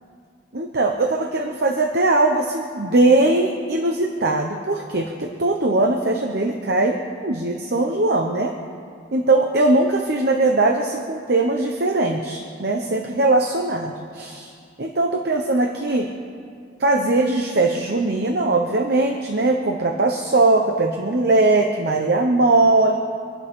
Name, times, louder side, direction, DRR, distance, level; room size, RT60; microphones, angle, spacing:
voice 1, 0.5-8.5 9.1-14.5 14.8-16.1 16.8-23.0, right 2 dB, 55° right, 3 dB, 1.0 m, -20 dB
25.5 x 11.0 x 3.7 m, 2.3 s
head